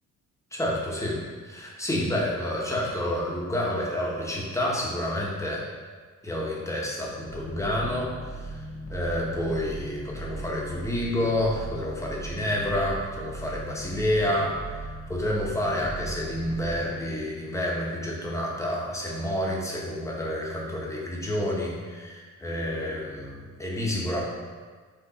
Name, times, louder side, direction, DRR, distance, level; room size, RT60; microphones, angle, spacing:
voice 1, 0.5-1.2 1.4-5.7 6.2-8.6 8.9-24.2, left 1 dB, 10° left, -3 dB, 1.0 m, -29 dB
sound 1, 7.3-17.0, right 1 dB, 75° left, 0.8 m, -38 dB
4.6 x 2.6 x 3.9 m, 1.5 s
cardioid pair, 90°, 30 cm